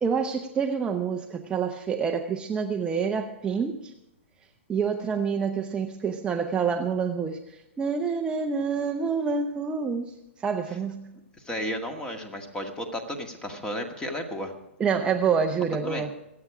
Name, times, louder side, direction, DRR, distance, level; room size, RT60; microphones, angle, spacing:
voice 1, 0.0-3.9 4.7-10.1 10.4-11.1 14.8-16.1, right 6 dB, 15° right, 3 dB, 0.8 m, -27 dB
voice 2, 11.4-14.5 15.8-16.0, equal, 10° left, 5 dB, 1.9 m, -33 dB
24.5 x 8.8 x 5.0 m, 0.91 s
hypercardioid pair, 130°, 7 cm